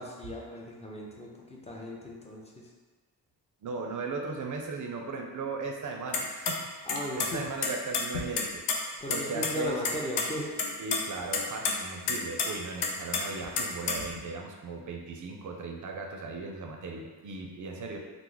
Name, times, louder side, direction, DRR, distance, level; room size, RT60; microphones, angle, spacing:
voice 1, 0.0-2.7 6.8-7.4 9.0-10.5, equal, 15° left, -3 dB, 0.4 m, -37 dB
voice 2, 3.6-8.6 9.1-9.8 10.8-18.0, right 3 dB, 50° right, 2 dB, 0.4 m, -37 dB
sound 1, 6.1-6.5 6.9-7.3 7.6-8.8 9.1-9.2 9.4-9.5 9.8-10.3 10.6-11.0 11.3-11.7 12.1-12.5 12.8-14.2, left 5 dB, 80° left, 0.6 m, -28 dB
3.1 x 2.0 x 3.7 m, 1.3 s
wide cardioid pair, 120°, 41 cm